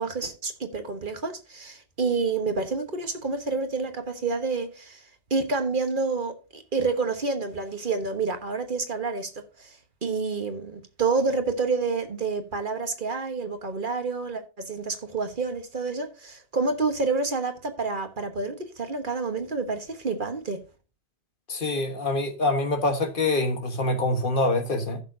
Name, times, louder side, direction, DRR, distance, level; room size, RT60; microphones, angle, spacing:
voice 1, 0.0-20.6, right 4 dB, 50° right, 1.4 m, -29 dB
voice 2, 21.5-25.0, left 2 dB, 50° left, 1.5 m, -25 dB
14.5 x 6.6 x 2.7 m
omnidirectional pair, 1.1 m